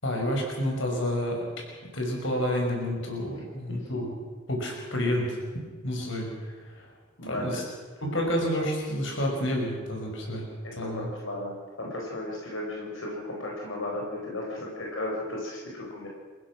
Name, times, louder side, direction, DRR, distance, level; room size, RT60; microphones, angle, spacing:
voice 1, 0.0-1.5 1.9-4.1 4.5-5.4 5.8-6.9 7.2-7.6 8.0-10.5 10.8-11.1, equal, 70° left, 0 dB, 6.0 m, -29 dB
voice 2, 7.2-7.6 10.8-16.1, left 1 dB, 85° left, -2 dB, 4.8 m, -35 dB
28.5 x 15.5 x 6.2 m, 1.5 s
head